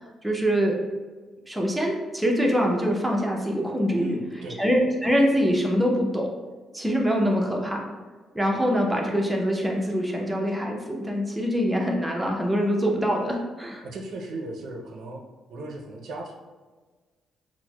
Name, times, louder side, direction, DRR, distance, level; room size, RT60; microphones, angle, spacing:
voice 1, 0.2-0.8 1.5-4.2 4.6-6.3 6.7-7.8 8.3-13.8, equal, 5° right, -1 dB, 0.5 m, -24 dB
voice 2, 4.0-4.6 13.8-15.2 15.5-16.3, right 2 dB, 70° right, 1 dB, 0.4 m, -36 dB
4.3 x 2.0 x 2.2 m, 1.3 s
cardioid pair, 90°, 0 cm